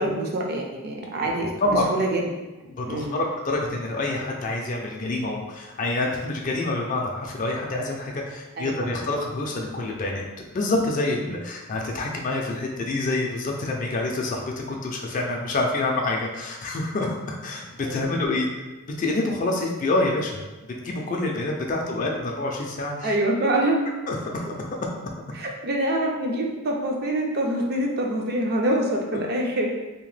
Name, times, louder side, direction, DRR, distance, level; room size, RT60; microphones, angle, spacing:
voice 1, 0.0-2.2 2.9-3.2 8.6-8.7 11.2-11.3 17.8-18.2 21.7-22.0 23.0-23.8 25.3-29.7, right 1 dB, 45° right, 0 dB, 0.4 m, -26 dB
voice 2, 2.7-10.2 10.5-18.5 18.9-20.4 20.7-23.1 24.1-24.8, left 2 dB, 35° left, 0 dB, 0.3 m, -27 dB
2.8 x 2.1 x 3.2 m, 1.1 s
head